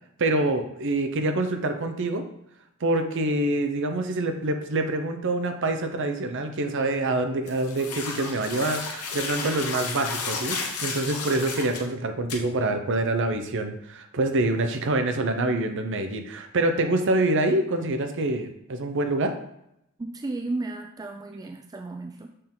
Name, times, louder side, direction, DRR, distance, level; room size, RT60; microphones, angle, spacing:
voice 1, 0.2-2.2 2.8-19.3, right 2 dB, 60° right, 6 dB, 0.7 m, -26 dB
sound 1, 7.5-11.9 12.3-12.4, left 4 dB, 85° left, 1.1 m, -33 dB
voice 2, 20.0-22.3, right 2 dB, 15° right, 4 dB, 0.3 m, -33 dB
6.6 x 3.7 x 3.8 m, 0.80 s
head